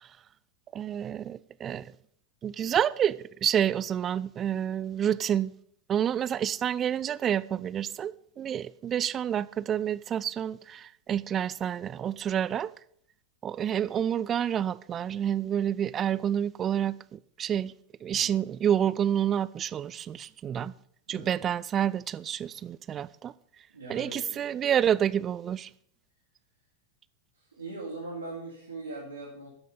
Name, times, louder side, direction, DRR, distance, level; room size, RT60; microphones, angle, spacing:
voice 1, 0.7-1.9 2.4-5.5 5.9-12.7 13.4-17.7 18.0-20.7 21.1-23.3 23.9-25.7, right 9 dB, 25° right, 0.3 m, -29 dB
voice 2, 18.1-18.4 21.1-21.4 23.7-24.5 27.3-29.5, right 2 dB, 75° right, 2.5 m, -41 dB
12.5 x 5.6 x 5.3 m
figure-of-eight pair, 90°, 0 cm